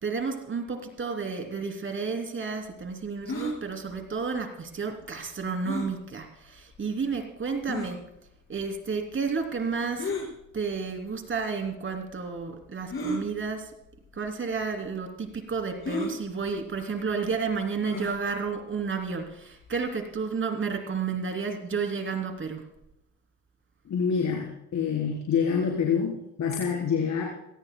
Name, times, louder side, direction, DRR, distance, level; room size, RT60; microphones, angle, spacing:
voice 1, 0.0-8.0 8.5-10.1 10.5-13.7 14.1-22.6, right 5 dB, 40° right, 4 dB, 3.0 m, -31 dB
sound 1, 3.3-3.6 5.6-5.9 6.7-6.8 7.7-7.9 10.0-10.3 11.3-11.4 12.9-13.2 14.1-14.3 14.6-14.7 15.8-16.1 17.8-18.2, left 1 dB, 45° left, 5.2 m, -32 dB
voice 2, 23.9-27.2, left 6 dB, 65° left, -1 dB, 3.7 m, -26 dB
21.5 x 18.5 x 2.2 m, 0.82 s
cardioid pair, 90°, 30 cm